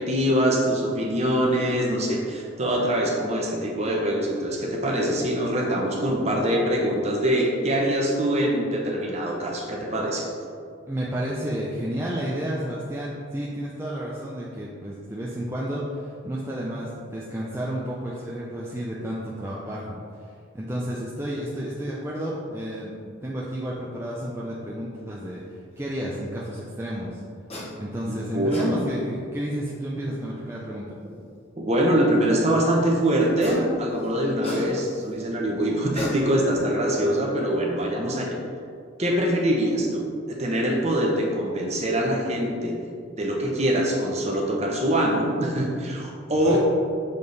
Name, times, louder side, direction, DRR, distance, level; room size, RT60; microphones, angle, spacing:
voice 1, 0.0-10.3 28.1-28.8 31.6-38.4 39.0-42.7 43.2-46.6, right 1 dB, 35° right, -1 dB, 0.9 m, -24 dB
voice 2, 10.9-20.0 20.5-27.2 27.8-31.0 46.4-46.6, equal, 10° right, -5 dB, 0.4 m, -31 dB
sound 1, 27.5-27.7 28.3-28.7 30.1-30.2 33.2-33.7 34.0-35.0 35.8-36.6, left 1 dB, 30° left, 1.0 m, -34 dB
6.7 x 3.5 x 4.0 m, 2.3 s
head